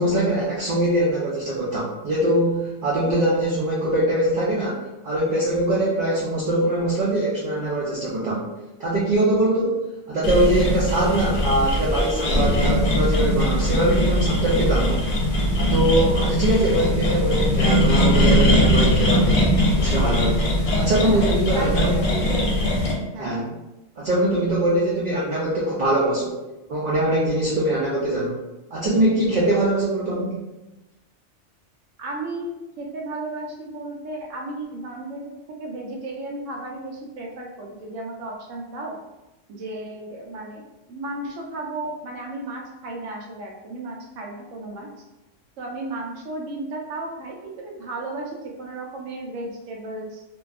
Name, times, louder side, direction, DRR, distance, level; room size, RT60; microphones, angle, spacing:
voice 1, 0.0-8.4 8.8-9.8 10.1-15.1 15.6-19.4 19.8-20.4 20.8-22.2 23.2-23.5 24.0-26.4 26.7-28.4 28.7-30.4, right 1 dB, 60° right, -6 dB, 0.6 m, -22 dB
sound 1, 10.2-22.9, equal, 65° left, 0.9 m, -20 dB
voice 2, 21.0-22.7 23.1-23.4 32.0-39.0 39.5-45.0 45.6-50.2, right 2 dB, 85° right, -1 dB, 1.0 m, -34 dB
2.6 x 2.2 x 2.3 m, 1.0 s
omnidirectional pair, 1.3 m